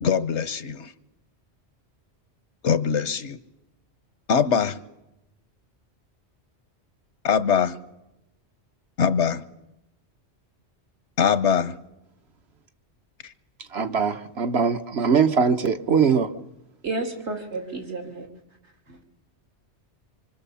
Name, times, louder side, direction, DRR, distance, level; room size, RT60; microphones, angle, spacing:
voice 1, 0.0-0.9 2.6-3.4 4.3-4.8 7.2-7.8 9.0-9.4 11.2-11.7, left 7 dB, 90° left, 12 dB, 1.4 m, -22 dB
voice 2, 13.6-16.3, right 6 dB, 70° right, 7 dB, 1.3 m, -21 dB
voice 3, 16.8-18.3 18.9-19.0, right 3 dB, 85° right, 2 dB, 3.3 m, -31 dB
26.0 x 24.0 x 7.0 m, 0.94 s
omnidirectional pair, 1.1 m